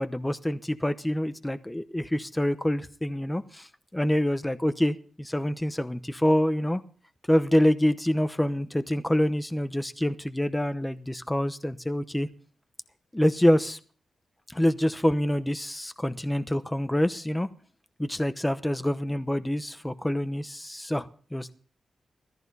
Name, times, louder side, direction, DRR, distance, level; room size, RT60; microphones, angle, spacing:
voice 1, 0.0-6.8 7.3-12.3 13.1-13.8 14.5-17.5 18.0-21.5, left 1 dB, 10° left, 0.8 m, -26 dB
17.0 x 14.0 x 4.1 m
wide cardioid pair, 135°, 0 cm